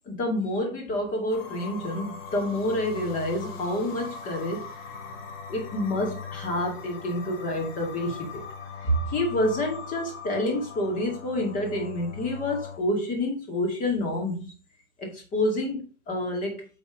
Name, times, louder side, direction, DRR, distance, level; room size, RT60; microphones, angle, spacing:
voice 1, 0.1-4.7 5.5-8.4 8.8-14.5 15.0-15.8 16.1-16.7, left 1 dB, 20° left, 2.1 m, -28 dB
sound 1, 1.3-12.8, left 5 dB, 45° left, 1.7 m, -40 dB
8.4 x 4.1 x 5.1 m
hypercardioid pair, 165°, 44 cm